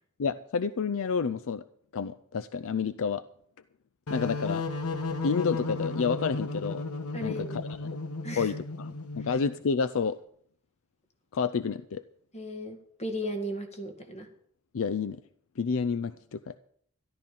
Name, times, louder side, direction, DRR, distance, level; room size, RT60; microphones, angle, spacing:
voice 1, 0.2-1.6 1.9-3.2 4.1-4.6 5.2-6.8 7.2-7.6 8.4-10.2 11.3-12.0 14.7-15.2 15.6-16.6, left 5 dB, 65° left, 14 dB, 0.5 m, -29 dB
sound 1, 4.1-9.6, left 3 dB, 85° left, 1.2 m, -34 dB
voice 2, 7.1-7.6 8.2-8.5 12.3-14.3, equal, 30° left, 5 dB, 2.0 m, -36 dB
14.0 x 12.0 x 5.4 m, 0.63 s
head